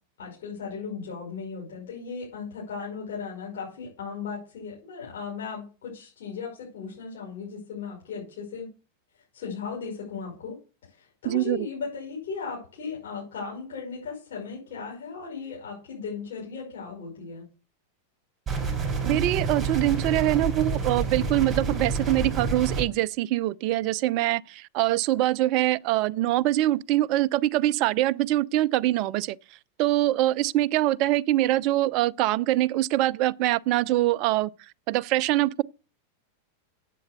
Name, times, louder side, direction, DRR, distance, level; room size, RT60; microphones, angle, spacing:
voice 1, 0.2-8.7 9.3-10.6 10.8-17.5, left 5 dB, 60° left, 5.6 m, -36 dB
voice 2, 11.3-11.6 19.0-29.4 29.8-34.5 34.9-35.6, right 15 dB, 40° right, 0.4 m, -24 dB
sound 1, 18.5-22.8, right 4 dB, 15° right, 6.0 m, -28 dB
8.3 x 7.8 x 6.8 m
figure-of-eight pair, 90°, 0 cm